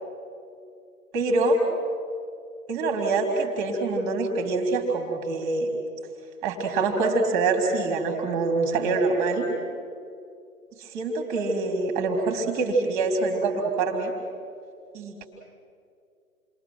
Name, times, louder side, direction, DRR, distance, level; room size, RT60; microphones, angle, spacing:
voice 1, 1.1-1.6 2.7-5.7 6.4-9.5 10.8-14.1 14.9-15.3, right 3 dB, 15° right, 2 dB, 2.5 m, -25 dB
28.5 x 22.0 x 7.6 m, 2.4 s
figure-of-eight pair, 135°, 47 cm